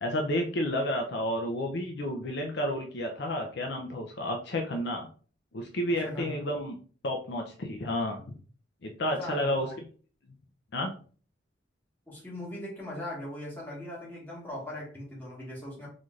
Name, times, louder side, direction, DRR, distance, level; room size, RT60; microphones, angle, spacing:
voice 1, 0.0-5.1 5.5-6.8 7.0-8.2 8.8-9.7 10.7-10.9, left 1 dB, 60° left, 2 dB, 0.5 m, -31 dB
voice 2, 5.9-6.4 9.1-9.7 12.1-15.9, left 1 dB, 10° left, -6 dB, 1.6 m, -40 dB
4.0 x 3.1 x 2.4 m, 0.41 s
head